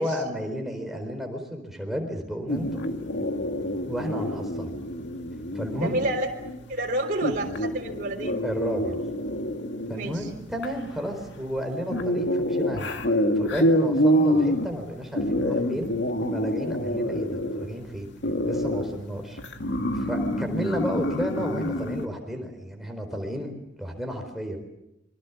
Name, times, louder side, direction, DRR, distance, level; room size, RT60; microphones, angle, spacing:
voice 1, 0.0-2.8 3.8-4.7 5.5-5.9 8.4-9.0 9.9-13.0 13.4-18.1 18.4-19.4 19.9-23.5 23.8-24.6, equal, ahead, 3 dB, 4.2 m, -32 dB
sound 1, 2.5-22.1, equal, 70° left, 2.0 m, -27 dB
voice 2, 5.8-6.3 6.7-8.4 9.9-10.3, right 1 dB, 45° right, 0 dB, 3.6 m, -29 dB
27.5 x 24.5 x 7.2 m, 0.89 s
head